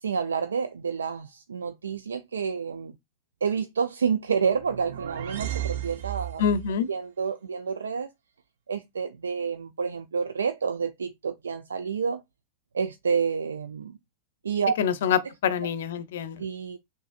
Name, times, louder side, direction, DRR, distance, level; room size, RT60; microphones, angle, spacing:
voice 1, 0.0-2.9 3.4-6.4 6.9-8.1 8.7-12.2 12.7-14.0 14.4-14.7 16.4-16.8, right 6 dB, 85° right, 0.3 m, -29 dB
sound 1, 4.4-6.8, right 11 dB, 70° right, 0.7 m, -34 dB
voice 2, 6.4-6.9 14.8-16.4, left 7 dB, 70° left, 0.6 m, -26 dB
6.3 x 2.6 x 2.4 m
hypercardioid pair, 100°, 0 cm